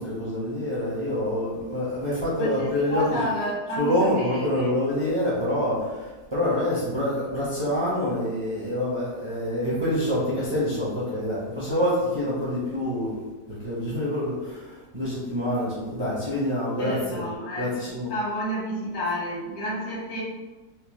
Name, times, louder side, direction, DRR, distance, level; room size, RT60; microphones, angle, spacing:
voice 1, 0.0-3.0 3.8-6.0 6.3-13.1 13.6-14.6 14.9-17.2 17.6-18.1, left 1 dB, 25° right, -7 dB, 0.6 m, -26 dB
voice 2, 2.4-4.8 16.8-20.2, equal, 80° left, -7 dB, 1.9 m, -31 dB
4.4 x 2.0 x 3.0 m, 1.2 s
omnidirectional pair, 1.8 m